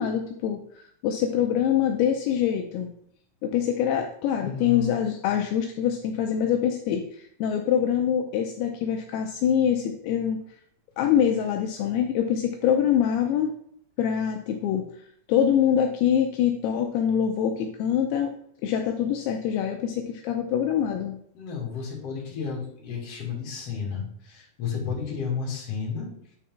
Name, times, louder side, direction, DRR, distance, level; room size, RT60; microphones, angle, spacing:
voice 1, 0.0-2.9 3.4-10.4 11.0-13.5 14.0-18.3 18.6-21.2, left 9 dB, 80° left, 3 dB, 2.5 m, -25 dB
voice 2, 4.4-5.0 21.3-26.1, left 6 dB, 45° left, -3 dB, 2.6 m, -32 dB
9.2 x 4.3 x 3.6 m, 0.67 s
omnidirectional pair, 4.7 m